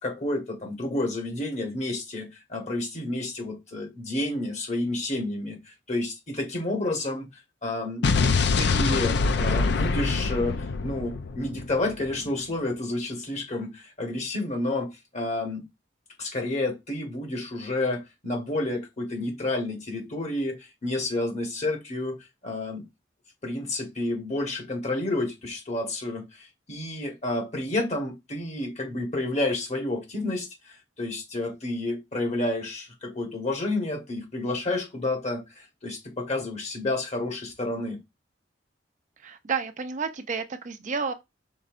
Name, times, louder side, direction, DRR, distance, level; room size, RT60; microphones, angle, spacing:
voice 1, 0.0-7.3 7.6-8.0 8.6-15.7 16.2-22.8 23.4-38.0, left 2 dB, 40° left, 1.3 m, -30 dB
Explosion, 8.0-12.1, left 4 dB, 65° left, 0.5 m, -24 dB
voice 2, 39.2-41.1, right 5 dB, 45° right, 0.5 m, -31 dB
5.4 x 3.9 x 2.5 m
head